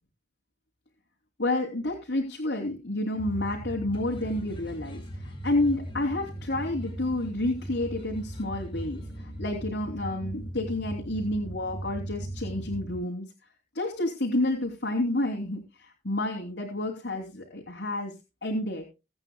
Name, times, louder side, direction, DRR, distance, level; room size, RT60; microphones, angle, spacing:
voice 1, 1.4-13.2 13.7-18.1 18.4-18.8, left 1 dB, 80° left, 0 dB, 3.1 m, -30 dB
sound 1, 3.2-13.0, right 1 dB, 30° left, 5.3 m, -38 dB
22.5 x 9.1 x 2.2 m, 0.28 s
head